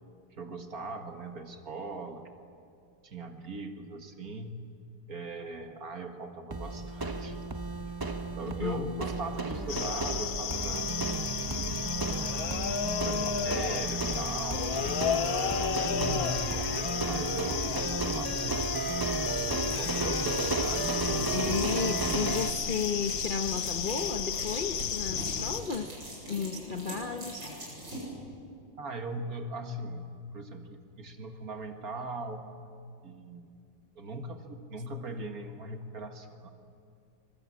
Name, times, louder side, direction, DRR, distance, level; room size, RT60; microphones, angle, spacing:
voice 1, 0.4-2.3 3.0-4.6 5.1-7.4 7.8-8.0 8.4-10.9 11.5-11.9 13.0-16.5 17.0-21.3 28.8-30.1 30.3-32.5 33.0-33.5 34.0-36.5, right 3 dB, 55° right, 5 dB, 2.1 m, -40 dB
sound 1, 6.5-22.5, right 2 dB, 20° right, 0.6 m, -33 dB
voice 2, 8.6-9.0 21.3-26.0 26.3-27.5, left 6 dB, 45° left, 6 dB, 0.7 m, -33 dB
sound 2, 9.7-25.6, left 8 dB, 60° left, 1.2 m, -33 dB
sound 3, 19.2-28.0, equal, 85° right, 8.5 m, -42 dB
25.5 x 22.0 x 8.6 m, 2.4 s
omnidirectional pair, 2.0 m